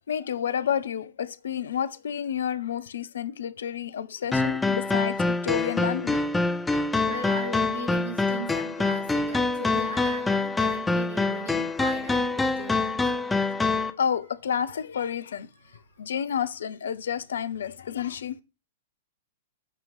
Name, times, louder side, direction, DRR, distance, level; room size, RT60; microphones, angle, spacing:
voice 1, 0.1-6.2 7.0-7.1 13.7-15.5 16.0-18.4, left 8 dB, 70° left, 0.5 m, -30 dB
sound 1, 4.3-13.9, left 3 dB, 10° left, 0.7 m, -25 dB
voice 2, 7.0-13.0 14.0-14.2 14.7-14.8 15.5-15.8, right 3 dB, 80° right, 2.7 m, -38 dB
8.1 x 3.0 x 5.4 m
figure-of-eight pair, 100°, 0 cm